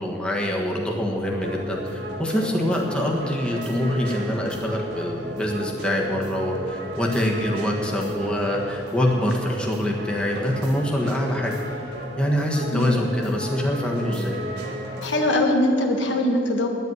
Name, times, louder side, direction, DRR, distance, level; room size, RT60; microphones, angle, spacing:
voice 1, 0.0-11.6 12.2-14.4, equal, 5° left, -1 dB, 1.4 m, -25 dB
sound 1, 1.4-15.4, equal, 60° right, 2.0 m, -34 dB
voice 2, 12.7-13.0 15.0-16.7, left 1 dB, 90° left, 2 dB, 1.6 m, -22 dB
10.5 x 8.2 x 9.5 m, 2.5 s
head